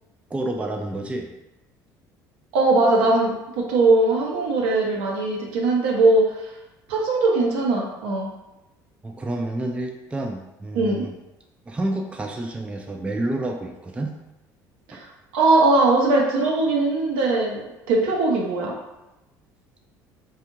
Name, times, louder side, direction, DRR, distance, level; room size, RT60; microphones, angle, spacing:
voice 1, 0.3-1.3 9.0-11.1 11.7-14.1 14.9-15.0, right 1 dB, 10° right, 2 dB, 0.4 m, -29 dB
voice 2, 2.5-6.5 6.9-8.3 10.7-11.0 14.9-15.0 15.3-18.7, right 2 dB, 70° right, -1 dB, 0.7 m, -20 dB
2.5 x 2.4 x 2.9 m, 0.96 s
hypercardioid pair, 70°, 10 cm